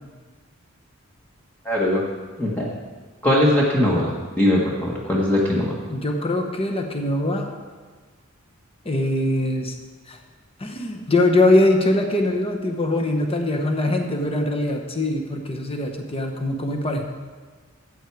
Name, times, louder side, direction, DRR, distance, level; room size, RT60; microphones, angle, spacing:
voice 1, 1.6-2.0 2.4-2.7 3.2-5.8, left 1 dB, 10° left, -5 dB, 1.3 m, -20 dB
voice 2, 5.9-7.5 8.8-9.7 10.1-10.2 10.6-17.0, left 1 dB, 25° left, 3 dB, 1.0 m, -22 dB
13.5 x 8.2 x 4.7 m, 1.4 s
head